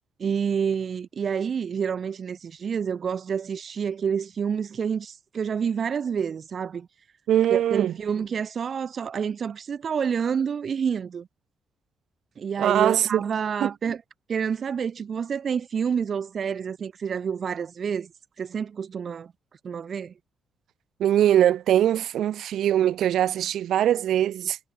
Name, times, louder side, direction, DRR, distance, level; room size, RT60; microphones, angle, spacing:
voice 1, 0.2-6.9 7.5-11.3 12.4-14.0 14.3-18.1 18.4-19.3 19.6-20.1, right 7 dB, 40° right, 2.4 m, -28 dB
voice 2, 7.3-7.9 12.6-13.2 13.6-13.7 21.0-24.6, right 11 dB, 70° right, 2.2 m, -22 dB
cardioid pair, 155°, 0 cm